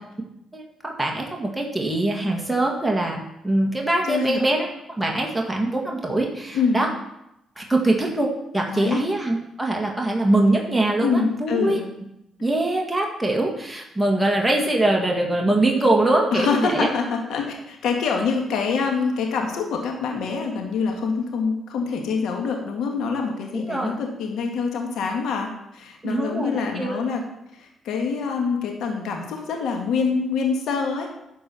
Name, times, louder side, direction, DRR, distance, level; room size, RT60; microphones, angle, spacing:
voice 1, 0.5-4.7 5.0-6.9 7.6-11.8 12.4-16.9 23.5-23.9 26.0-27.0, right 2 dB, 5° right, 0 dB, 1.9 m, -23 dB
voice 2, 4.1-4.4 6.5-6.9 8.7-9.0 11.0-11.8 12.4-12.5 16.3-27.2 27.5-31.1, left 5 dB, 75° left, 2 dB, 1.8 m, -25 dB
11.5 x 4.6 x 7.0 m, 0.83 s
cardioid pair, 90°, 0 cm